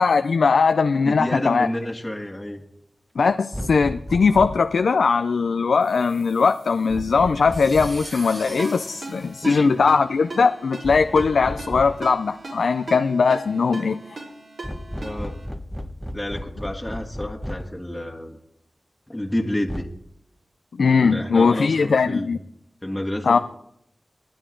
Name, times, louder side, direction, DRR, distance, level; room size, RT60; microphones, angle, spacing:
voice 1, 0.0-1.7 3.2-14.2 20.8-22.4 23.2-23.4, left 5 dB, 85° left, 10 dB, 0.4 m, -20 dB
voice 2, 1.0-2.6 9.4-9.9 15.0-15.4 16.1-18.4 19.1-19.9 21.0-22.3 22.8-23.4, left 1 dB, 15° left, 1 dB, 1.5 m, -29 dB
sound 1, 3.5-4.7 6.9-8.1 10.8-12.1 14.6-17.8 19.7-19.9, equal, ahead, 1.0 m, -34 dB
sound 2, 5.8-10.2, right 2 dB, 55° right, 5.2 m, -43 dB
Ringtone, 8.6-15.4, right 2 dB, 75° right, 4.0 m, -39 dB
20.5 x 9.7 x 3.8 m, 0.74 s
cardioid pair, 40°, 0 cm